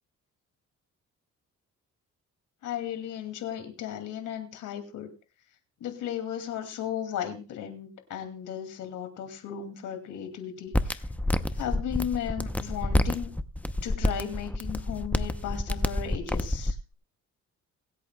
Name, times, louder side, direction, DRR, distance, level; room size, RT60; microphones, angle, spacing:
voice 1, 2.6-5.1 5.8-11.0 11.5-13.3 13.8-16.8, left 9 dB, 80° left, 7 dB, 2.5 m, -35 dB
sound 1, 10.7-16.7, left 1 dB, 5° left, 0.7 m, -28 dB
22.5 x 8.5 x 2.3 m, 0.32 s
cardioid pair, 90°, 30 cm